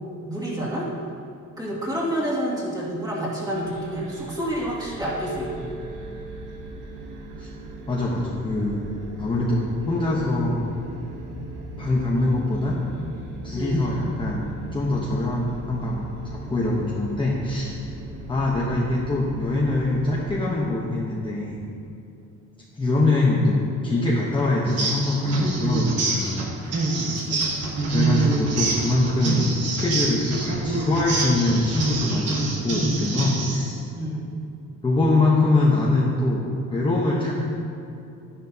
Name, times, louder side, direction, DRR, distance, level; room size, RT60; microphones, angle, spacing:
voice 1, 0.2-0.9 1.6-5.7 13.5-13.9 27.1-27.5 34.0-34.3 37.2-37.3, right 1 dB, 10° right, -6 dB, 2.2 m, -29 dB
sound 1, 3.5-21.0, right 1 dB, 85° right, 1.2 m, -38 dB
voice 2, 7.9-8.8 9.2-10.6 11.8-12.8 13.4-14.5 14.7-17.8 18.3-21.6 22.8-26.9 27.8-32.4 32.6-33.9 34.8-37.3, left 2 dB, 15° left, -5 dB, 0.9 m, -23 dB
sound 2, 24.7-33.7, right 3 dB, 55° right, 1.4 m, -26 dB
12.5 x 10.5 x 2.8 m, 2.7 s
cardioid pair, 160°, 30 cm